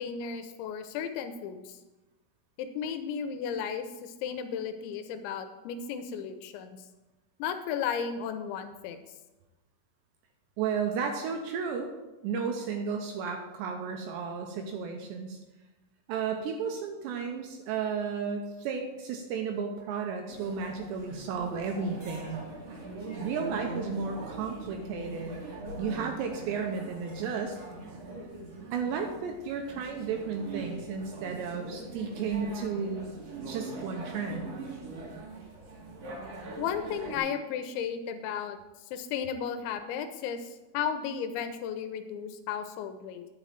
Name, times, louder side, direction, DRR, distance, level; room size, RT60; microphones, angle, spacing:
voice 1, 0.0-1.8 2.6-6.8 7.4-9.0 36.6-38.6 38.9-43.3, left 7 dB, 80° left, 8 dB, 2.8 m, -34 dB
voice 2, 10.6-11.9 12.2-15.4 16.1-22.4 23.2-25.4 25.8-27.6 28.7-33.1 33.5-34.5, right 6 dB, 80° right, 3 dB, 2.7 m, -33 dB
sound 1, 20.3-37.2, right 2 dB, 55° right, 1.8 m, -42 dB
9.0 x 5.3 x 7.5 m, 1.1 s
omnidirectional pair, 5.6 m